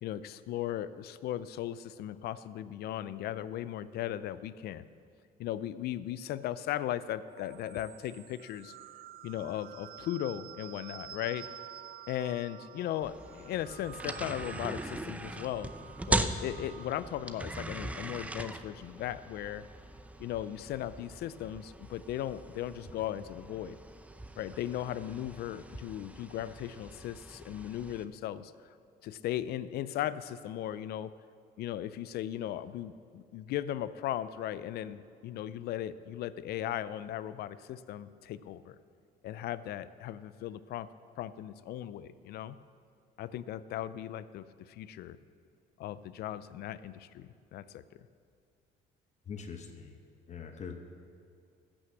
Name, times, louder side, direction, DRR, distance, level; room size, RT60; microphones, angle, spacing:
voice 1, 0.0-4.8 5.4-8.7 9.2-11.5 12.1-15.7 16.1-19.6 20.2-23.8 24.4-28.5 29.0-31.1 31.6-38.8 39.2-40.9 41.2-42.6 43.2-45.2 45.8-47.8, left 12 dB, 70° left, 15 dB, 0.5 m, -37 dB
sound 1, 7.3-17.1, right 11 dB, 60° right, 0.6 m, -50 dB
sound 2, 13.0-28.0, right 2 dB, 10° right, 0.6 m, -40 dB
voice 2, 49.3-49.9 50.3-50.9, left 6 dB, 45° left, 6 dB, 1.0 m, -42 dB
14.0 x 6.3 x 7.7 m, 2.4 s
cardioid pair, 110°, 17 cm